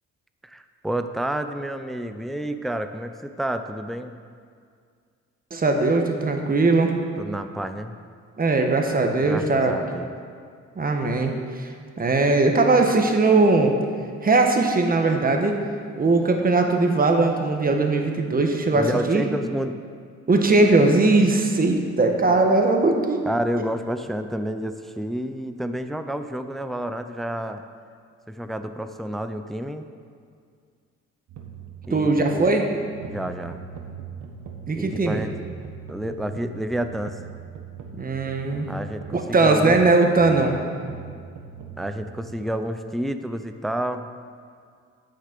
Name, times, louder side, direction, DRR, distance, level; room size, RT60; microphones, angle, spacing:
voice 1, 0.4-4.2 7.2-7.9 9.2-10.2 18.7-19.8 23.2-27.6 28.3-29.9 31.9-32.6 33.1-33.6 34.7-35.3 35.9-37.2 38.7-39.8 41.8-44.1, right 1 dB, ahead, 8 dB, 0.5 m, -29 dB
voice 2, 5.5-6.9 8.4-9.7 10.8-11.7 12.0-13.7 14.2-15.6 16.0-19.2 20.3-23.2 31.9-32.6 34.7-35.2 38.0-38.7 39.1-40.5, right 3 dB, 30° right, 3 dB, 1.3 m, -20 dB
sound 1, 31.3-42.3, right 6 dB, 70° right, 1.5 m, -40 dB
9.8 x 6.4 x 6.7 m, 2.1 s
cardioid pair, 90°, 30 cm